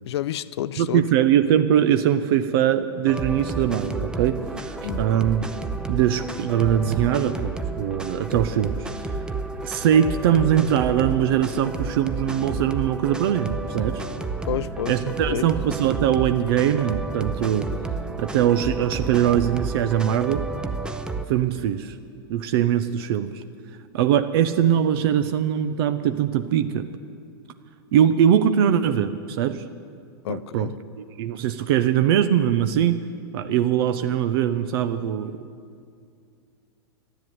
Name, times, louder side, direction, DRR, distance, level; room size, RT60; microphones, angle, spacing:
voice 1, 0.1-1.0 4.8-5.3 10.4-10.5 14.5-15.5 30.2-30.8, left 11 dB, 75° left, 0.5 m, -30 dB
voice 2, 0.8-5.4 5.9-8.8 9.6-14.0 14.9-17.7 18.2-20.4 21.3-21.9 22.3-23.4 23.9-26.9 27.9-29.6 30.3-30.7 31.0-33.0 33.3-35.3, right 10 dB, 60° right, 0.7 m, -21 dB
sound 1, 3.1-21.3, right 3 dB, 5° right, 0.7 m, -31 dB
12.0 x 10.5 x 9.4 m
hypercardioid pair, 120°, 14 cm